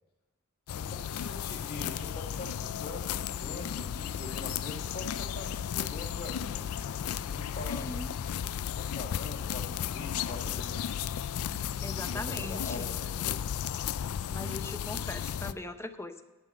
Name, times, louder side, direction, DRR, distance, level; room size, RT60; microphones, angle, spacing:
sound 1, 0.7-15.5, left 9 dB, 90° left, 0.4 m, -34 dB
voice 1, 0.7-6.6 7.0-7.9 8.8-10.8 11.6-13.5, left 2 dB, 50° left, -4 dB, 1.9 m, -44 dB
voice 2, 7.7-8.2 11.5-12.9 14.3-16.2, left 1 dB, 10° left, 9 dB, 0.6 m, -40 dB
10.5 x 5.4 x 8.4 m, 1.1 s
head